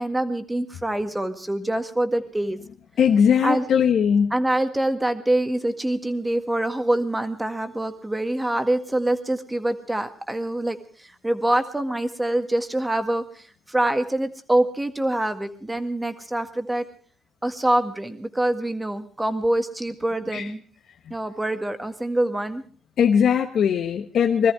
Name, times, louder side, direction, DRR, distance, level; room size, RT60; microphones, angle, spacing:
voice 1, 0.0-2.6 3.4-3.6 4.3-16.9 17.4-20.6 21.1-22.6, right 1 dB, 10° right, 9 dB, 1.8 m, -25 dB
voice 2, 3.0-4.3 20.3-20.5 21.0-21.1 23.0-24.5, left 7 dB, 65° left, 3 dB, 1.2 m, -19 dB
21.0 x 14.0 x 4.8 m, 0.43 s
cardioid pair, 90°, 0 cm